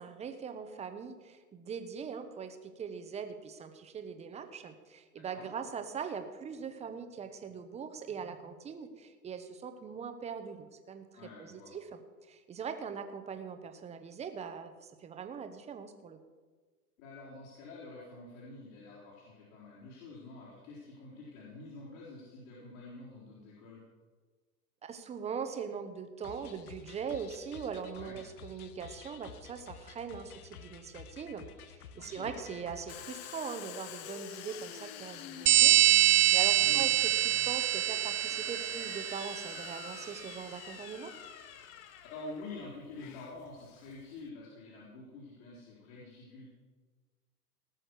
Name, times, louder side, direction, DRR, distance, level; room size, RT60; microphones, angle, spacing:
voice 1, 0.0-11.1 11.4-12.0 12.3-16.2 24.8-31.4 31.7-35.8 36.0-36.9 37.2-41.1, right 6 dB, 15° right, 8 dB, 1.0 m, -41 dB
voice 2, 5.2-5.5 11.1-11.7 17.0-23.8 27.9-28.2 31.9-32.3 36.5-36.8 42.1-46.5, left 3 dB, 55° left, -6 dB, 4.4 m, -47 dB
sound 1, 26.2-33.1, left 7 dB, 70° left, 1.3 m, -51 dB
Domestic sounds home sounds, 32.9-44.3, left 11 dB, 20° left, 0.4 m, -47 dB
sound 2, 35.5-39.7, right 14 dB, 75° right, 0.6 m, -25 dB
19.0 x 6.4 x 6.3 m, 1.4 s
hypercardioid pair, 130°, 46 cm